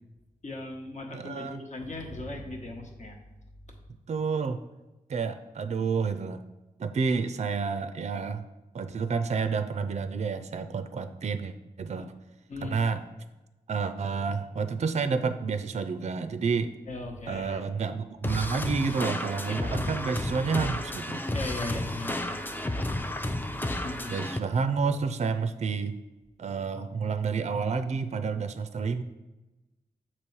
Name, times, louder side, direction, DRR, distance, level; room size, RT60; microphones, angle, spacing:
voice 1, 0.4-3.2 3.7-3.8 12.5-12.7 16.9-17.6 19.4-19.5 21.3-23.4 23.7-24.2, left 2 dB, 50° left, 1 dB, 1.2 m, -38 dB
voice 2, 1.1-1.6 4.1-4.6 5.1-6.4 6.8-8.4 8.7-12.1 12.6-13.0 13.7-16.7 17.3-21.3 24.1-26.0 26.4-29.0, right 5 dB, 45° right, 10 dB, 0.4 m, -29 dB
sound 1, 18.2-24.4, left 1 dB, 15° left, 0.5 m, -32 dB
6.8 x 3.0 x 4.6 m, 1.1 s
cardioid pair, 45°, 15 cm